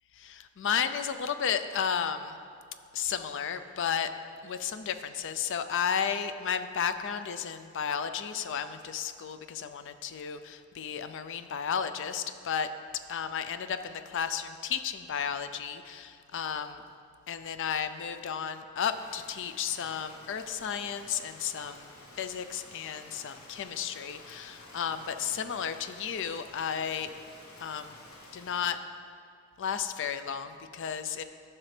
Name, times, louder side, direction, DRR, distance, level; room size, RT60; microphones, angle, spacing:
voice 1, 0.1-2.4 2.9-4.1 4.4-12.7 13.1-16.8 17.3-21.9 22.2-27.1 27.6-28.0 28.3-28.8 29.6-31.2, left 7 dB, 60° left, 10 dB, 0.4 m, -33 dB
Rain, 18.8-28.7, left 1 dB, 80° left, 1.4 m, -52 dB
14.0 x 6.0 x 3.3 m, 2.3 s
head